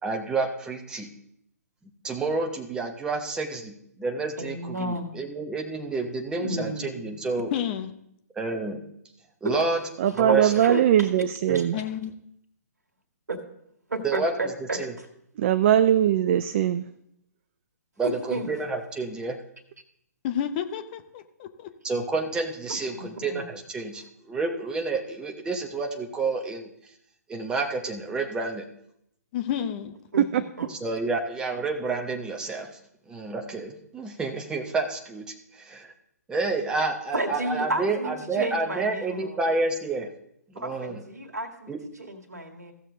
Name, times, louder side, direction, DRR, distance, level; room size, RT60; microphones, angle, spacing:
voice 1, 0.0-1.1 2.0-7.5 8.3-8.8 9.4-9.8 10.2-10.5 11.5-11.8 14.0-14.9 18.0-19.4 21.8-26.7 27.3-28.7 30.7-32.7 33.1-35.9 36.3-40.1 40.5-41.0 41.7-41.8, right 3 dB, 10° right, 3 dB, 0.9 m, -29 dB
voice 2, 4.4-5.2 6.4-7.1 9.4-9.5 10.3-11.1 11.5-11.6 13.3-13.4 13.9-15.1 18.0-18.5 22.9-23.4 30.1-30.2 30.6-30.7 37.1-39.4 40.5-42.7, right 1 dB, 75° right, 4 dB, 1.7 m, -32 dB
voice 3, 7.5-7.9 11.7-12.1 20.2-21.7 29.3-29.9, left 10 dB, 35° left, 9 dB, 0.8 m, -30 dB
voice 4, 10.0-11.8 15.4-16.9 30.2-30.4, right 10 dB, 40° right, 10 dB, 0.4 m, -21 dB
15.5 x 6.5 x 3.9 m, 0.74 s
figure-of-eight pair, 130°, 9 cm